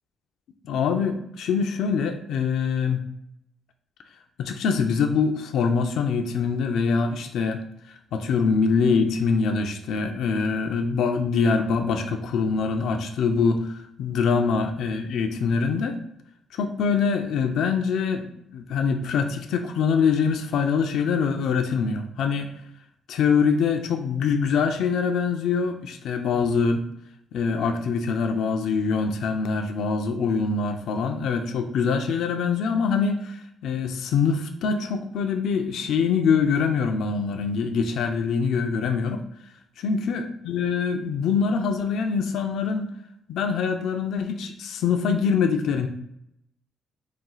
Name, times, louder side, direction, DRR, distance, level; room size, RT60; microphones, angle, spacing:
voice 1, 0.7-3.0 4.4-7.6 7.9-16.0 16.5-22.5 23.1-26.8 27.3-39.2 39.8-42.9 43.3-45.9, left 5 dB, 75° left, 5 dB, 0.4 m, -24 dB
4.2 x 2.3 x 3.7 m, 0.78 s
cardioid pair, 90°, 0 cm